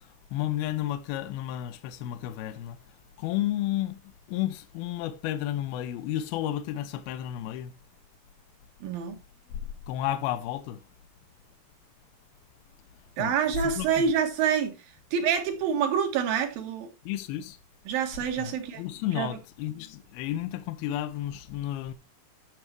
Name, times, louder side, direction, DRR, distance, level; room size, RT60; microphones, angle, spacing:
voice 1, 0.3-2.8 3.2-4.0 4.3-7.7 9.9-10.8 13.2-13.4 13.6-14.1 17.1-17.6 18.4-21.9, left 12 dB, 80° left, 2.7 m, -32 dB
voice 2, 8.8-9.2 13.2-14.8 15.1-16.9 17.9-18.8 19.1-19.4, right 7 dB, 65° right, 3.1 m, -27 dB
13.5 x 6.6 x 3.2 m
omnidirectional pair, 4.6 m